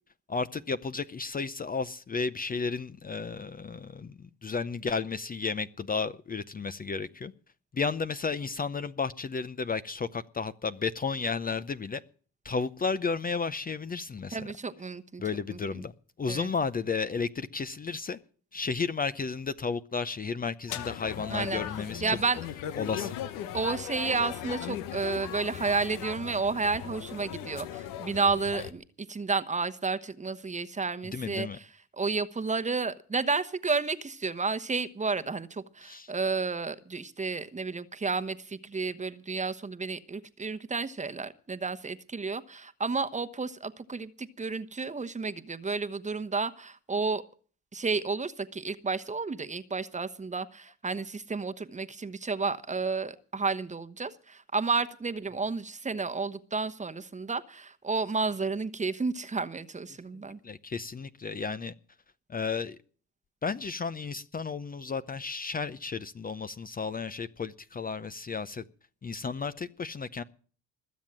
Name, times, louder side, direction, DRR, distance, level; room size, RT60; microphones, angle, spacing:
voice 1, 0.3-7.3 7.7-12.0 12.4-14.4 15.2-15.9 16.2-18.2 18.5-22.0 22.7-23.1 31.1-31.6 35.8-36.1 60.4-61.7 62.3-62.8 63.4-68.6 69.0-70.2, left 5 dB, 25° left, 0.7 m, -33 dB
voice 2, 14.3-15.2 15.5-15.8 16.3-16.5 21.3-21.6 22.0-22.5 23.5-31.6 32.0-47.2 47.7-60.4, right 4 dB, 20° right, 1.1 m, -31 dB
sound 1, 20.7-28.7, left 11 dB, 90° left, 1.1 m, -38 dB
21.0 x 7.4 x 7.5 m
cardioid pair, 85°, 32 cm